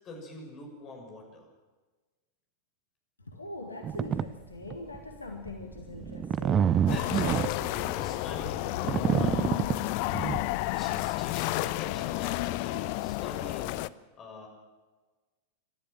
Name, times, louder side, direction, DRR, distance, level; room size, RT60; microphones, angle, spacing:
voice 1, 0.0-1.4 6.9-8.7 9.1-9.7 10.1-13.8 14.2-14.5, left 2 dB, 30° left, 2 dB, 6.7 m, -45 dB
voice 2, 3.3-6.8, left 2 dB, 80° left, 4 dB, 1.8 m, -42 dB
sound 1, 3.8-4.2 4.7-5.0 5.5-10.4, right 9 dB, 25° right, 0.7 m, -27 dB
sound 2, 6.9-13.9, left 18 dB, 45° left, 0.5 m, -31 dB
27.0 x 13.0 x 7.4 m, 1.3 s
figure-of-eight pair, 90°, 0 cm